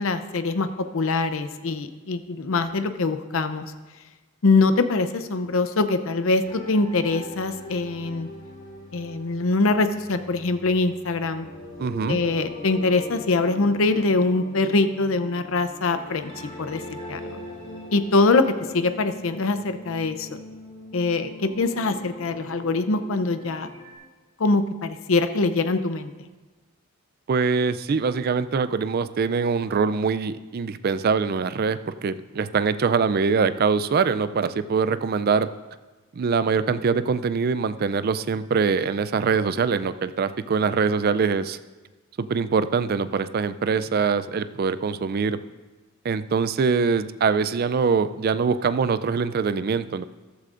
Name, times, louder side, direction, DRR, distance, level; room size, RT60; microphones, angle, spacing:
voice 1, 0.0-3.7 4.4-8.3 8.9-11.4 12.1-16.3 16.6-16.8 17.1-17.4 17.9-20.4 20.9-23.7 24.4-26.1, left 3 dB, 65° left, 10 dB, 0.6 m, -23 dB
sound 1, 6.4-23.9, left 1 dB, 40° left, 3.9 m, -41 dB
voice 2, 11.8-12.2 27.3-35.5 36.2-41.6 42.2-45.4 46.0-50.0, right 5 dB, 45° right, 13 dB, 0.4 m, -23 dB
14.5 x 12.5 x 2.5 m, 1.3 s
head